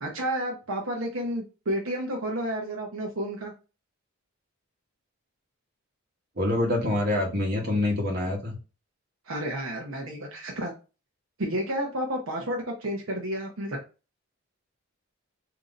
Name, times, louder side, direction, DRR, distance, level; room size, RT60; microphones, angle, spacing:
voice 1, 0.0-3.5 9.3-10.7 11.4-13.8, right 1 dB, 70° right, 0 dB, 0.8 m, -31 dB
voice 2, 6.4-8.6, left 1 dB, 45° right, 0 dB, 1.3 m, -26 dB
3.8 x 2.8 x 4.0 m, 0.32 s
head